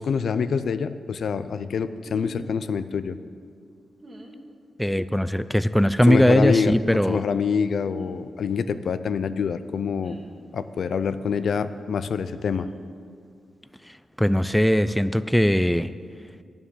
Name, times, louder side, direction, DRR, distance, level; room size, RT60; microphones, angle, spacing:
voice 1, 0.0-3.2 6.1-6.7 7.1-10.2 10.5-12.7, left 6 dB, 70° left, 12 dB, 0.5 m, -26 dB
sound 1, 2.0-2.3 4.0-4.4 5.8-6.1 7.9-8.1 10.0-10.4 12.5-12.7, right 1 dB, 35° right, 1.7 m, -45 dB
voice 2, 4.8-7.2 13.8-15.9, equal, 5° left, 13 dB, 0.3 m, -20 dB
11.0 x 7.0 x 9.1 m, 2.2 s
cardioid pair, 100°, 0 cm